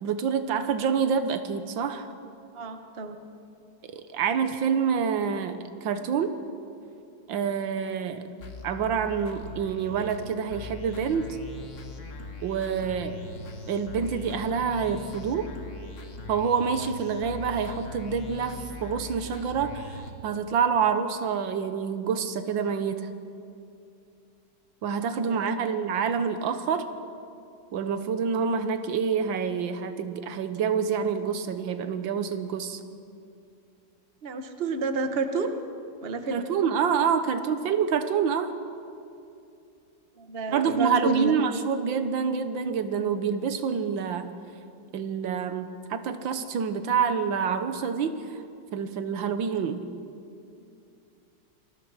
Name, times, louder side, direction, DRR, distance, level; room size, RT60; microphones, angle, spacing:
voice 1, 0.0-2.1 3.9-6.3 7.3-8.3 8.6-11.2 12.4-13.2 13.7-15.5 16.3-23.1 24.8-26.8 27.7-32.8 36.3-38.5 40.5-44.3 44.9-48.4 48.7-49.9, right 6 dB, 90° right, 9 dB, 1.8 m, -27 dB
voice 2, 2.5-3.2 25.1-25.5 34.2-35.5 36.0-36.4 40.2-41.3, right 3 dB, 35° right, 7 dB, 1.3 m, -30 dB
sound 1, 8.4-20.1, left 2 dB, 45° left, 1.8 m, -41 dB
27.5 x 21.5 x 4.8 m, 2.5 s
omnidirectional pair, 2.0 m